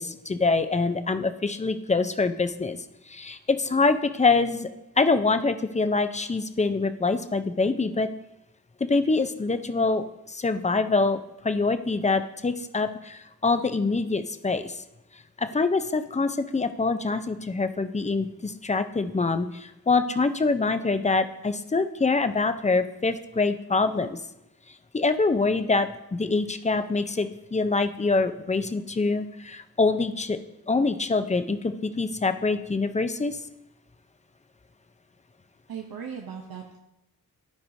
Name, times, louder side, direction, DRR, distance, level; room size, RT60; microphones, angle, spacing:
voice 1, 0.0-2.8 3.1-4.7 5.0-8.1 8.9-14.8 15.4-24.2 24.9-30.4 30.7-33.4, left 3 dB, 20° left, 10 dB, 0.5 m, -25 dB
voice 2, 35.7-36.8, right 7 dB, 75° right, 1 dB, 0.8 m, -38 dB
13.5 x 4.8 x 2.7 m, 0.91 s
wide cardioid pair, 65°, 36 cm